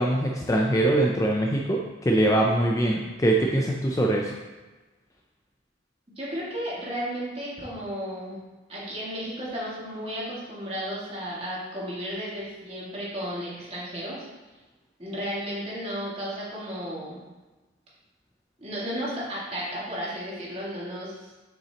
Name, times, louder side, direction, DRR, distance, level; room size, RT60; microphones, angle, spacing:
voice 1, 0.0-4.3, right 1 dB, 15° left, -1 dB, 0.4 m, -23 dB
voice 2, 6.2-8.4 8.7-14.2 15.0-17.2 18.6-21.3, equal, 30° right, -7 dB, 1.9 m, -33 dB
7.3 x 5.7 x 2.9 m, 1.2 s
head